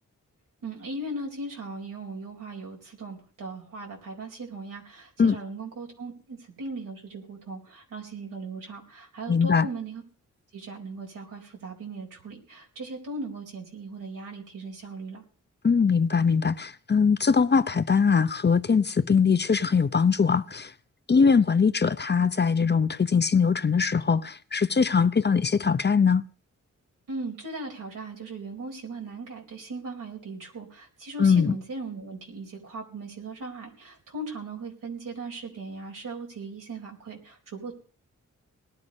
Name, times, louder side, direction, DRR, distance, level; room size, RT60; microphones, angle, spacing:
voice 1, 0.6-10.0 10.5-15.2 27.1-37.7, right 3 dB, 85° right, 4.4 m, -38 dB
voice 2, 9.3-9.7 15.6-20.7 21.1-26.2 31.2-31.6, left 5 dB, 35° left, 0.7 m, -22 dB
19.0 x 11.5 x 5.4 m
cardioid pair, 65°, 31 cm